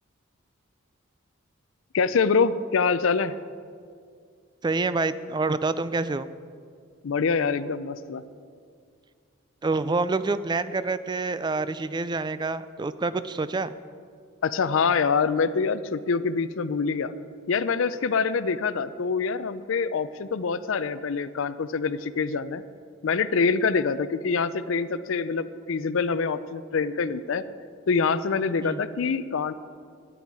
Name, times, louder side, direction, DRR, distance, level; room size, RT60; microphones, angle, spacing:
voice 1, 1.9-3.4 7.0-8.2 14.4-17.1 17.5-22.6 23.0-27.4 27.9-29.5, left 5 dB, 65° left, 14 dB, 0.5 m, -25 dB
voice 2, 4.6-6.3 9.6-13.7 28.6-28.8, right 3 dB, 20° right, 14 dB, 0.4 m, -27 dB
14.0 x 10.0 x 4.7 m, 2.1 s
head